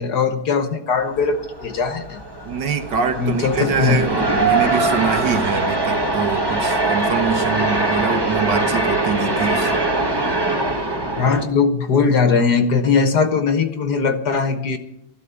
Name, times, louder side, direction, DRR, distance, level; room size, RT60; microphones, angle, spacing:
voice 1, 0.0-2.2 3.2-4.0 11.2-14.8, left 5 dB, 55° left, 8 dB, 1.4 m, -19 dB
sound 1, 1.1-11.5, right 2 dB, 15° right, 1.0 m, -22 dB
voice 2, 2.4-9.8, right 6 dB, 60° right, 6 dB, 1.6 m, -24 dB
13.5 x 12.0 x 6.9 m, 0.82 s
omnidirectional pair, 2.3 m